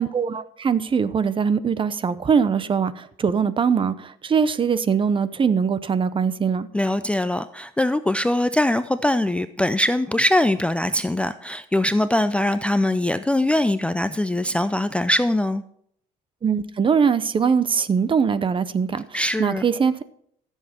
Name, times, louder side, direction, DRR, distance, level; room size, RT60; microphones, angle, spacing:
voice 1, 0.0-6.7 16.4-20.0, right 6 dB, 30° right, 0.7 m, -22 dB
voice 2, 6.7-15.6 19.1-19.6, left 1 dB, 5° left, 0.4 m, -22 dB
14.0 x 7.3 x 4.3 m
cardioid pair, 110°, 17 cm